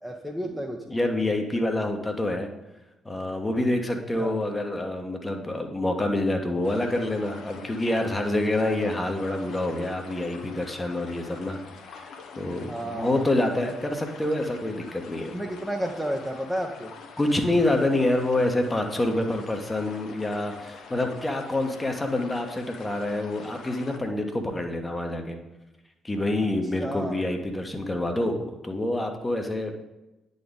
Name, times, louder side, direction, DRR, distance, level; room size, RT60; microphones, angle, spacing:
voice 1, 0.0-0.8 4.2-4.4 12.6-13.2 15.3-16.9 21.6-21.7 26.8-27.2, equal, 5° right, 0 dB, 0.8 m, -32 dB
voice 2, 0.9-2.5 3.0-11.6 11.9-15.3 17.2-25.4 26.0-28.4 28.6-29.8, left 1 dB, 20° left, 4 dB, 1.0 m, -27 dB
sound 1, 6.6-24.0, left 5 dB, 60° left, 0.7 m, -45 dB
9.6 x 4.0 x 3.6 m, 1.0 s
figure-of-eight pair, 45°, 0 cm